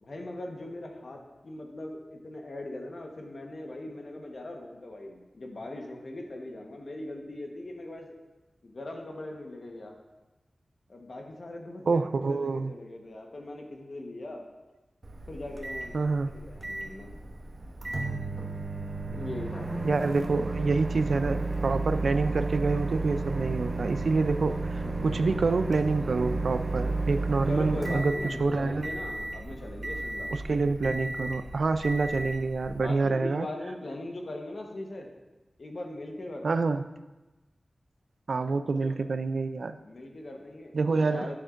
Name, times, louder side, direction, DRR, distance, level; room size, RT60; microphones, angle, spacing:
voice 1, 0.0-8.1 8.6-10.0 10.9-14.4 15.3-16.0 16.3-17.1 19.0-19.9 24.8-25.4 27.5-30.3 32.7-35.1 35.6-36.7 38.6-39.0 39.8-40.8 41.1-41.4, left 1 dB, 60° left, 2 dB, 1.1 m, -40 dB
voice 2, 11.9-12.7 15.9-16.3 19.8-28.9 30.3-33.5 36.4-36.8 38.3-39.8 40.7-41.4, right 3 dB, 75° right, 10 dB, 0.3 m, -27 dB
Microwave oven, 15.0-33.0, right 2 dB, 45° right, 0.8 m, -33 dB
11.0 x 7.1 x 2.5 m, 1.1 s
wide cardioid pair, 95°, 0 cm